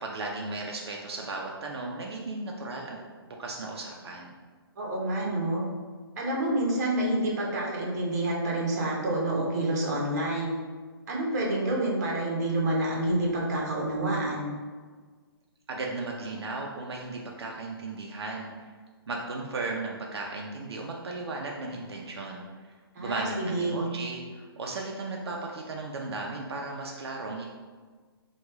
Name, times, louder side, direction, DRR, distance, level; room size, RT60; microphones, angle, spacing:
voice 1, 0.0-3.0 3.3-4.3 15.7-18.7 19.1-27.4, right 3 dB, 80° right, -1 dB, 0.5 m, -36 dB
voice 2, 4.8-5.6 6.2-10.6 11.1-14.5 22.9-23.8, right 1 dB, 40° right, -3 dB, 0.9 m, -28 dB
3.0 x 2.3 x 3.4 m, 1.5 s
hypercardioid pair, 160°, 13 cm